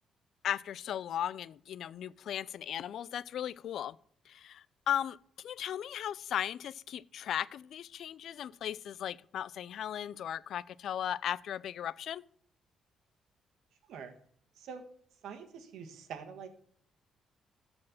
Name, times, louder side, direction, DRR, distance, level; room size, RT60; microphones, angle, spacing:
voice 1, 0.4-4.0 4.3-12.2, left 10 dB, 70° left, 0.3 m, -37 dB
voice 2, 15.2-16.5, right 6 dB, 80° right, 1.4 m, -45 dB
13.0 x 4.4 x 5.6 m
cardioid pair, 90°, 0 cm